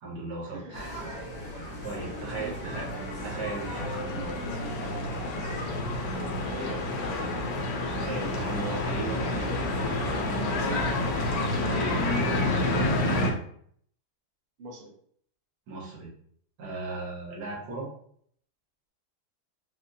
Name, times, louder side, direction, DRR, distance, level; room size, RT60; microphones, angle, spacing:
voice 1, 0.0-1.0 1.8-2.9 3.2-4.3 7.9-9.5 11.6-13.2 15.7-16.1 16.6-17.9, right 2 dB, 80° right, -4 dB, 1.8 m, -36 dB
voice 2, 0.5-1.2 2.0-2.8 5.5-5.9 6.4-6.8 10.6-10.9 14.6-14.9, right 2 dB, 45° right, -2 dB, 0.8 m, -41 dB
sound 1, 0.7-11.4, equal, 35° left, 0.7 m, -39 dB
sound 2, 1.2-13.3, left 2 dB, 70° left, 1.1 m, -30 dB
4.9 x 2.0 x 2.7 m, 0.63 s
omnidirectional pair, 1.7 m